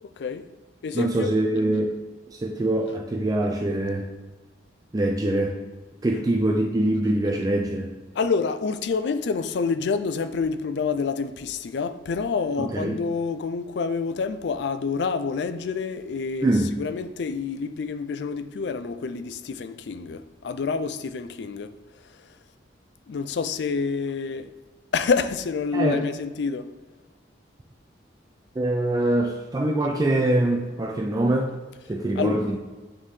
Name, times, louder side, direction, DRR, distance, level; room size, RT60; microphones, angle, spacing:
voice 1, 0.0-0.5 0.8-1.3 8.1-21.7 23.1-24.5 24.9-26.7 32.2-32.4, left 5 dB, 65° left, 0.4 m, -28 dB
voice 2, 0.9-1.9 2.3-4.1 4.9-5.6 6.0-7.9 12.6-13.0 16.4-16.7 25.7-26.0 28.6-31.5 31.9-32.6, right 1 dB, 20° right, 0.3 m, -24 dB
8.7 x 3.7 x 3.1 m
head